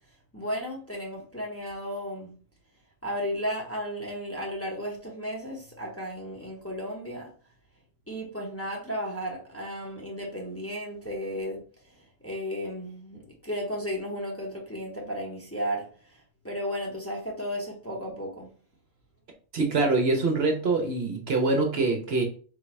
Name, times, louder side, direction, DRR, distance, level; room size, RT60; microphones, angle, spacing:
voice 1, 0.3-2.4 3.0-7.3 8.1-18.5, equal, 10° left, 0.9 m, -34 dB
voice 2, 19.5-22.2, right 3 dB, 60° right, 0.9 m, -24 dB
3.9 x 3.6 x 3.2 m
omnidirectional pair, 1.3 m